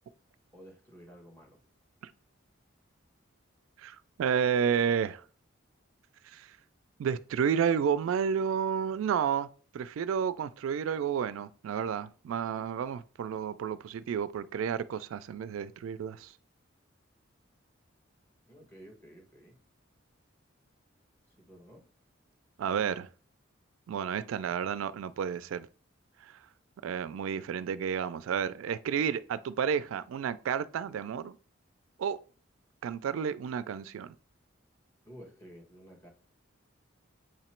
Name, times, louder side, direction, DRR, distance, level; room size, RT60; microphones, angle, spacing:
voice 1, 0.5-1.6 18.5-19.6 21.4-21.8 35.0-36.1, equal, 10° left, 1.2 m, -52 dB
voice 2, 3.8-5.2 6.2-6.5 7.0-9.5 9.7-16.3 22.6-23.1 23.9-25.7 26.8-31.4 32.0-32.2 32.8-34.1, right 7 dB, 85° right, 0.3 m, -31 dB
7.5 x 2.9 x 4.3 m
head